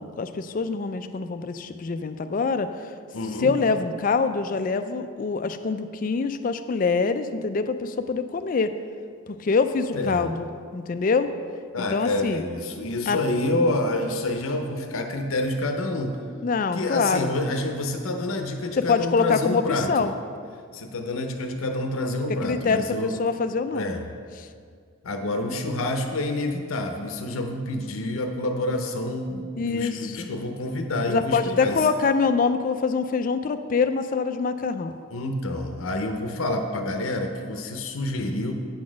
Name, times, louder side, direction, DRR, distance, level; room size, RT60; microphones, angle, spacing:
voice 1, 0.0-2.7 3.4-8.7 9.4-11.3 11.9-12.4 13.1-13.2 16.4-17.3 18.8-20.1 22.4-23.9 24.4-24.5 29.6-30.3 31.1-35.0, left 4 dB, 40° left, 10 dB, 0.3 m, -25 dB
voice 2, 3.1-3.5 9.9-10.3 11.7-16.2 16.7-19.9 20.7-23.2 23.7-24.0 25.0-31.8 35.1-38.5, left 2 dB, 85° left, 5 dB, 0.6 m, -28 dB
8.6 x 4.0 x 6.2 m, 2.1 s
head